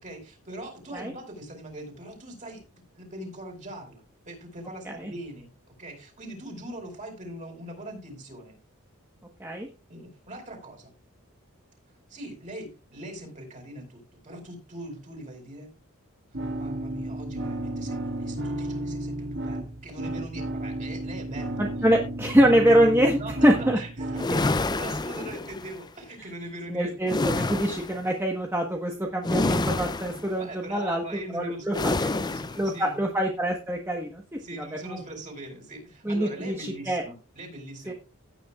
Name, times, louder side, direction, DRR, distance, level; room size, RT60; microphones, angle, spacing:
voice 1, 0.0-2.6 2.9-5.5 5.8-8.6 9.9-10.9 12.1-15.7 16.5-21.6 23.2-27.0 30.4-33.1 34.4-37.9, right 1 dB, 35° right, 1 dB, 4.9 m, -41 dB
sound 1, 16.3-24.3, right 1 dB, 50° right, 1.7 m, -33 dB
voice 2, 21.6-23.8 26.7-31.0 31.3-31.7 32.6-34.2 34.8-35.0 36.0-37.0 37.9-38.0, equal, 10° right, 1 dB, 1.2 m, -24 dB
sound 2, 24.2-25.8 27.1-28.0 29.2-30.3 31.7-32.7, left 2 dB, 20° left, 0.4 m, -28 dB
16.5 x 9.2 x 2.4 m, 0.31 s
head